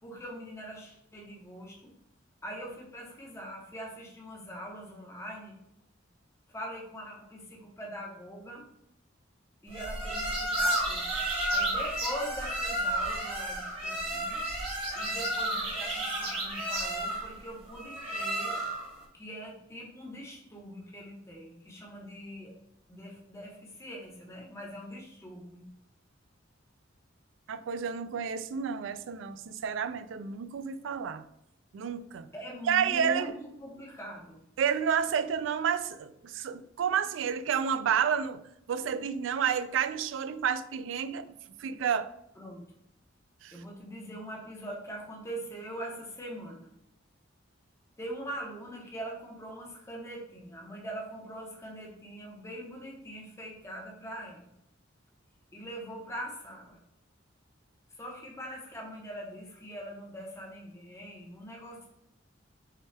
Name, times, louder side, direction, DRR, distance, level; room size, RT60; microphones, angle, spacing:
voice 1, 0.0-1.9 2.4-5.6 6.5-8.6 9.6-11.1 11.5-14.4 14.9-18.6 19.1-22.5 22.9-25.6 32.3-34.4 42.4-42.6 43.5-46.7 48.0-54.5 55.5-56.8 58.0-61.9, equal, 15° left, -2 dB, 0.8 m, -42 dB
sound 1, 9.7-19.0, right 1 dB, 30° right, 1.1 m, -32 dB
voice 2, 27.5-31.2 31.7-32.3 32.7-33.3 34.6-38.4 38.7-41.3 41.6-42.1 43.4-43.6, right 7 dB, 70° right, 13 dB, 0.3 m, -30 dB
5.5 x 2.3 x 3.3 m, 0.76 s
head